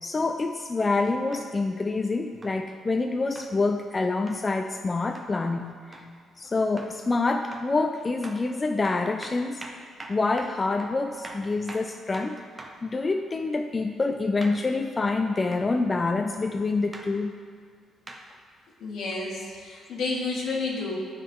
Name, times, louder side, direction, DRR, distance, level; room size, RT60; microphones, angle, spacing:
voice 1, 0.0-5.8 6.4-9.6 10.1-12.4 12.8-17.3, left 3 dB, 30° left, 5 dB, 0.3 m, -26 dB
sound 1, 1.3-1.5 2.4-2.6 3.3-3.5 4.3-4.5 5.1-5.3 5.9-6.1 6.8-7.0 7.5-7.8 8.2-8.4 8.8-12.9 14.4-14.6 15.5-15.7 16.9-17.1 18.1-18.3 19.1-19.2, right 2 dB, 20° right, 0.8 m, -43 dB
voice 2, 18.8-21.0, left 3 dB, 75° left, -2 dB, 1.5 m, -30 dB
11.5 x 3.9 x 3.6 m, 2.1 s
cardioid pair, 90°, 0 cm